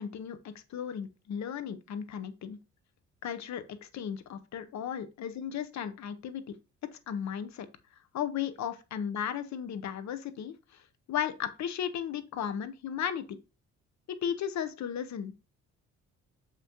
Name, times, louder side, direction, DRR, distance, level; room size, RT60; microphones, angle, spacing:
voice 1, 0.0-2.6 3.2-6.5 6.9-7.7 8.1-10.8 11.1-13.4 14.1-15.3, left 8 dB, 65° left, 0.9 m, -35 dB
6.7 x 5.9 x 3.0 m
cardioid pair, 90°, 30 cm